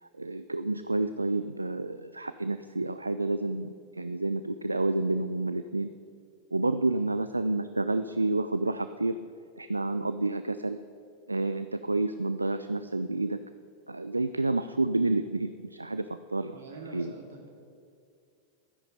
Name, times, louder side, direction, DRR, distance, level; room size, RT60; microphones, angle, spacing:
voice 1, 0.0-5.9 6.5-9.2 9.6-10.8 11.3-13.4 13.9-16.5 16.9-17.1, right 2 dB, 80° right, 11 dB, 0.3 m, -29 dB
voice 2, 16.5-17.5, right 3 dB, 65° right, 1 dB, 2.4 m, -45 dB
12.5 x 10.0 x 5.4 m, 2.4 s
figure-of-eight pair, 90°, 0 cm